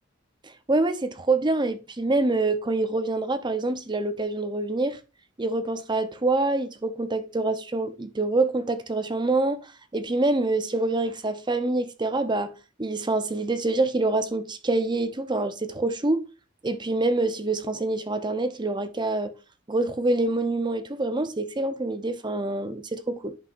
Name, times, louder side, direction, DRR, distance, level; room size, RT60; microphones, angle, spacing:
voice 1, 0.7-5.0 5.4-9.6 9.9-12.5 12.8-16.3 16.6-19.3 19.7-23.4, right 2 dB, 25° right, 0.8 m, -26 dB
10.5 x 5.7 x 2.6 m
head